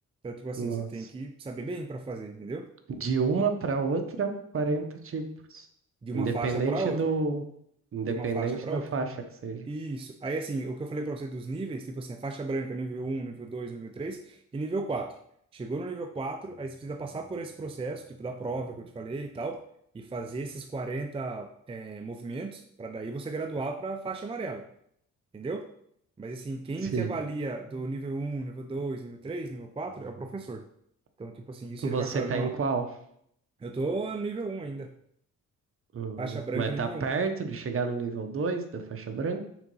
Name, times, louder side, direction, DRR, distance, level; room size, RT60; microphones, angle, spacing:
voice 1, 0.2-2.7 6.0-7.1 8.0-8.9 9.6-15.2 15.5-19.6 19.9-24.7 25.3-25.7 26.2-30.6 31.2-32.5 33.6-34.9 36.2-37.1, right 3 dB, 20° right, 5 dB, 0.5 m, -35 dB
voice 2, 2.9-5.2 5.5-5.7 6.1-7.4 7.9-9.1 9.4-9.7 26.8-27.1 31.8-32.9 35.9-39.4, right 4 dB, 45° right, 6 dB, 1.0 m, -30 dB
6.1 x 3.9 x 5.4 m, 0.70 s
cardioid pair, 105°, 31 cm